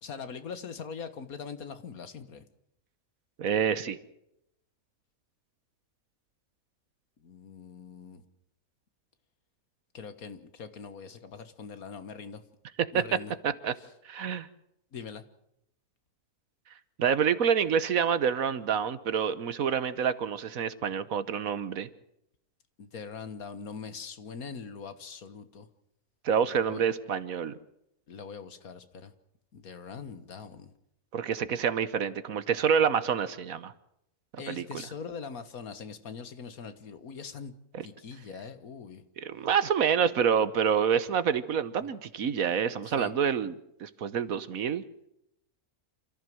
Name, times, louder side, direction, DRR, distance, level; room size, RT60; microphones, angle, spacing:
voice 1, 0.0-2.5 7.2-8.2 9.9-12.4 12.9-13.3 13.8-13.9 14.9-15.2 22.8-25.7 26.7-26.8 28.1-29.1 29.5-30.7 34.4-37.5 37.8-39.0 41.8-41.9 42.8-43.1, left 6 dB, 70° left, 11 dB, 1.9 m, -42 dB
voice 2, 3.4-4.0 12.9-13.0 13.4-13.7 14.0-14.5 17.0-21.9 26.2-27.5 31.1-33.7 34.5-34.8 37.7-37.8 39.2-43.5 43.8-44.8, right 7 dB, 70° right, 14 dB, 1.4 m, -27 dB
27.5 x 14.5 x 7.8 m, 0.80 s
omnidirectional pair, 1.6 m